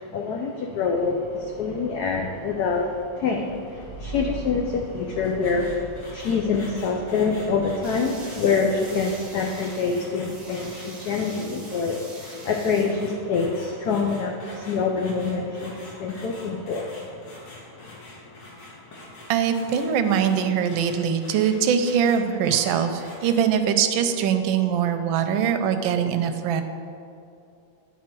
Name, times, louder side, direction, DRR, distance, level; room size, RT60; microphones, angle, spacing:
voice 1, 0.0-2.9 3.2-5.8 6.1-16.9, left 4 dB, 80° left, 2 dB, 0.8 m, -26 dB
sound 1, 0.7-11.3, right 2 dB, 45° left, 1.9 m, -43 dB
sound 2, 5.4-23.4, left 1 dB, 60° left, 2.1 m, -46 dB
sound 3, 7.8-12.8, right 2 dB, 30° right, 0.8 m, -44 dB
voice 2, 19.3-26.6, right 8 dB, 75° right, 7 dB, 1.3 m, -22 dB
9.3 x 4.5 x 4.4 m, 2.6 s
omnidirectional pair, 2.3 m